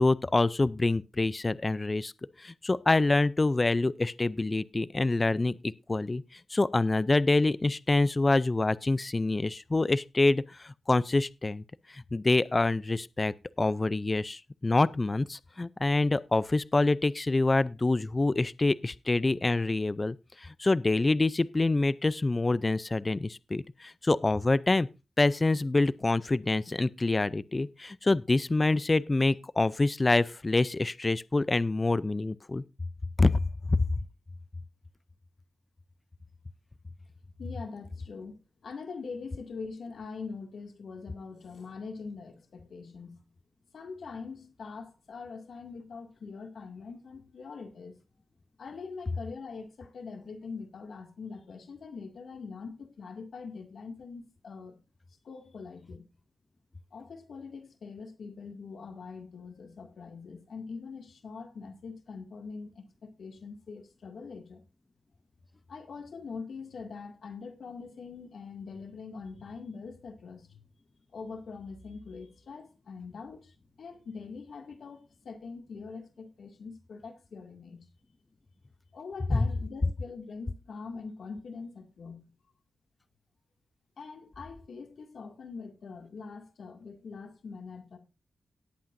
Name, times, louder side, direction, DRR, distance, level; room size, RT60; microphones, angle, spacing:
voice 1, 0.0-2.1 2.4-6.2 6.5-11.6 11.9-24.9 25.2-32.6 33.2-33.4 33.7-33.8 79.3-79.4, left 2 dB, 30° left, 0.4 m, -26 dB
voice 2, 37.4-43.2 43.7-48.0 48.6-54.8 55.2-56.0 56.9-64.6 65.7-70.6 71.1-77.9 78.9-82.2 84.0-88.0, left 4 dB, 80° left, 2.2 m, -43 dB
18.0 x 8.6 x 2.6 m
cardioid pair, 80°, 0 cm